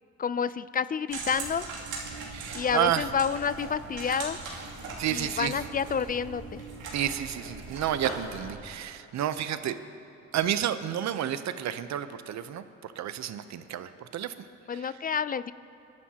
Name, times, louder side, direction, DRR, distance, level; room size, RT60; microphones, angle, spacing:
voice 1, 0.2-1.7 2.5-4.4 5.1-6.6 14.7-15.5, left 7 dB, 30° left, 16 dB, 0.4 m, -29 dB
sound 1, 1.1-8.5, right 4 dB, 85° right, 2.7 m, -39 dB
voice 2, 2.3-3.1 5.0-5.6 6.9-9.8 10.3-15.0, right 10 dB, 65° right, 11 dB, 0.7 m, -31 dB
27.0 x 11.0 x 2.9 m, 2.7 s
cardioid pair, 90°, 30 cm